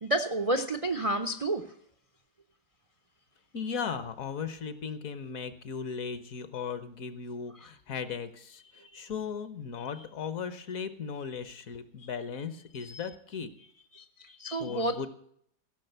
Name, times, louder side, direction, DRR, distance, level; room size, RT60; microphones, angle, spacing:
voice 1, 0.0-1.6 8.8-8.9 12.8-13.0 13.9-15.0, right 1 dB, 65° right, 7 dB, 0.3 m, -30 dB
voice 2, 3.5-13.5 14.6-15.1, left 6 dB, 60° left, 12 dB, 1.2 m, -37 dB
15.5 x 6.2 x 8.0 m, 0.67 s
omnidirectional pair, 1.8 m